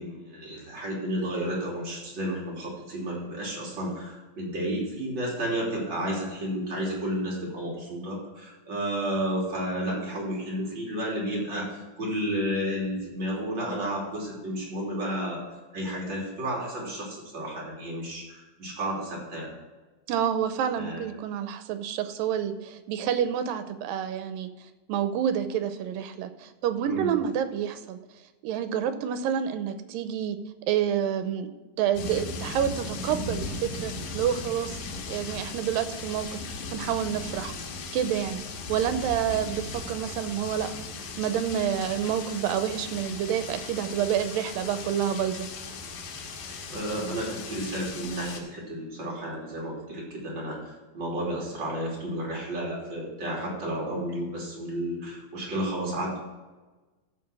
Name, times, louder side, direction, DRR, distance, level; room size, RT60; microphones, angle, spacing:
voice 1, 0.0-15.4 15.7-19.5 20.7-21.0 26.8-27.1 46.7-56.2, right 1 dB, 35° right, -3 dB, 3.5 m, -32 dB
voice 2, 20.1-24.5 24.9-28.0 28.4-30.4 30.7-31.5 31.8-34.7 35.1-36.4 36.7-37.5 37.9-38.4 38.7-40.7 41.2-45.5, right 9 dB, 80° right, 10 dB, 2.4 m, -28 dB
sound 1, 31.9-48.4, left 3 dB, 85° left, 3.0 m, -37 dB
14.0 x 4.6 x 6.1 m, 1.2 s
omnidirectional pair, 4.0 m